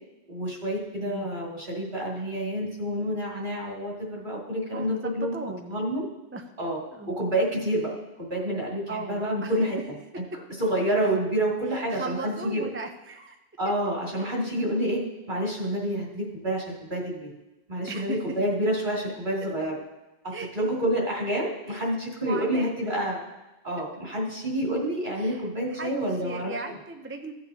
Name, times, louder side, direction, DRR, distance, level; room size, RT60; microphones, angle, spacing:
voice 1, 0.3-5.4 5.7-6.0 6.6-6.8 7.1-9.8 10.6-12.7 13.6-17.3 17.7-19.8 20.2-23.2 23.6-26.8, right 1 dB, 50° right, -5 dB, 2.8 m, -28 dB
voice 2, 4.7-5.9 6.3-6.4 6.9-7.1 8.9-9.5 11.7-13.4 14.1-14.3 14.6-14.7 15.9-16.1 17.9-18.2 20.3-20.5 21.7-21.8 22.2-22.7 25.1-27.3, right 3 dB, 20° right, 4 dB, 0.4 m, -37 dB
16.0 x 8.6 x 2.8 m, 1.0 s
omnidirectional pair, 1.1 m